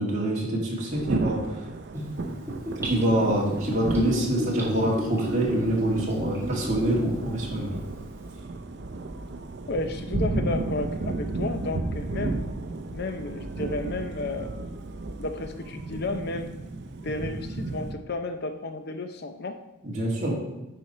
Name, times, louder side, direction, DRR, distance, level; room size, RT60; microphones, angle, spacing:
voice 1, 0.0-1.7 2.8-7.7 19.8-20.3, right 1 dB, 40° right, -3 dB, 2.1 m, -25 dB
Thunder / Rain, 0.9-17.9, right 2 dB, 55° right, 0.6 m, -33 dB
Gurgling / Bathtub (filling or washing), 1.9-7.1 7.4-7.5, equal, 15° right, 1.8 m, -33 dB
voice 2, 9.7-12.5 12.9-14.5 15.2-16.5 17.0-19.6, left 2 dB, 55° left, 7 dB, 0.6 m, -32 dB
9.9 x 5.3 x 4.2 m, 0.98 s
head